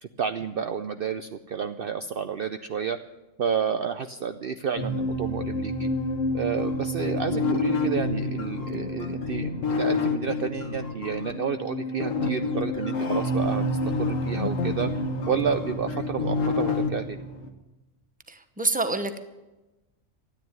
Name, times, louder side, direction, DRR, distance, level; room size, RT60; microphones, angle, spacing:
voice 1, 0.0-3.0 3.4-5.9 6.3-13.6 14.0-14.9 15.2-17.2, right 7 dB, 55° right, 9 dB, 0.7 m, -30 dB
sound 1, 4.8-17.5, equal, 60° left, 1.7 m, -31 dB
sound 2, 6.6-11.3 12.0-16.9, left 6 dB, 80° left, 1.7 m, -29 dB
voice 2, 18.3-19.2, right 3 dB, 5° right, 9 dB, 0.9 m, -27 dB
13.5 x 9.4 x 9.4 m, 1.0 s
omnidirectional pair, 1.3 m